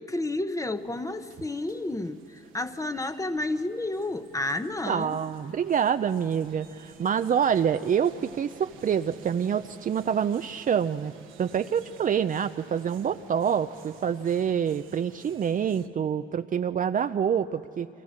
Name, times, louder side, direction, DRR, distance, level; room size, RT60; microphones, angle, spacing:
voice 1, 0.0-5.2, left 2 dB, 15° left, 9 dB, 1.0 m, -31 dB
sound 1, 0.7-15.9, right 8 dB, 90° right, 1.4 m, -52 dB
voice 2, 4.9-11.1 11.4-17.9, right 8 dB, 45° right, 9 dB, 0.5 m, -26 dB
29.0 x 24.5 x 6.5 m, 2.9 s
cardioid pair, 90°, 20 cm